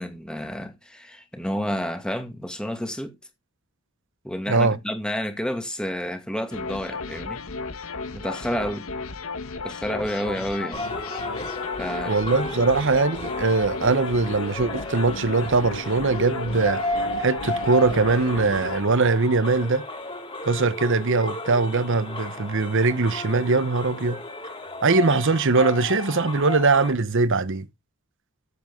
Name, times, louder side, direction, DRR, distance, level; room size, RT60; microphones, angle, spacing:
voice 1, 0.0-3.1 4.2-7.4 7.9-8.8 9.6-10.9 11.8-12.2, equal, 5° left, 2.2 m, -30 dB
sound 1, 6.5-18.8, left 3 dB, 70° left, 1.4 m, -34 dB
sound 2, 10.7-26.9, left 1 dB, 25° left, 3.9 m, -33 dB
voice 2, 12.0-16.8 17.2-19.8 20.4-24.2 24.8-27.7, right 3 dB, 60° right, 0.9 m, -21 dB
14.5 x 8.0 x 3.8 m
head